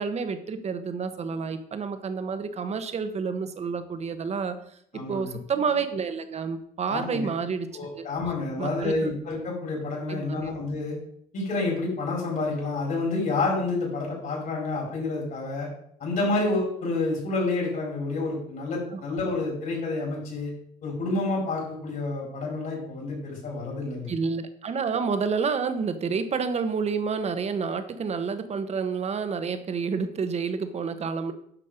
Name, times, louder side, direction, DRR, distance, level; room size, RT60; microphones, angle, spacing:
voice 1, 0.0-4.6 5.1-7.7 8.0-8.1 8.6-9.1 10.1-10.5 18.9-19.0 24.1-31.3, right 5 dB, 40° right, 9 dB, 1.2 m, -29 dB
voice 2, 4.9-5.4 6.9-7.3 7.7-11.0 11.3-15.7 16.0-20.5 20.8-24.1, left 3 dB, 55° left, -3 dB, 4.8 m, -29 dB
10.0 x 6.4 x 5.2 m, 0.67 s
cardioid pair, 110°, 17 cm